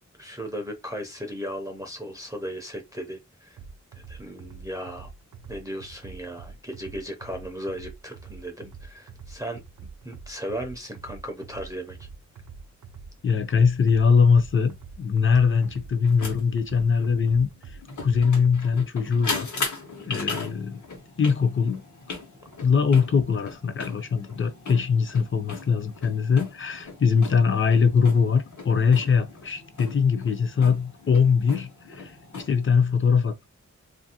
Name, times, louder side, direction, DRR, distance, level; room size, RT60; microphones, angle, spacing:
voice 1, 0.2-3.6 3.9-5.1 5.5-9.6 10.0-12.0, equal, 10° right, 0.5 m, -36 dB
sound 1, 3.6-18.6, right 5 dB, 80° right, 0.5 m, -45 dB
voice 2, 13.2-17.5 18.0-19.5 20.0-20.8 21.2-21.8 22.6-33.5, left 6 dB, 45° left, 0.5 m, -22 dB
sound 2, 13.5-13.6 15.6-32.7, left 3 dB, 85° left, 1.0 m, -38 dB
2.9 x 2.5 x 2.8 m
wide cardioid pair, 120°, 29 cm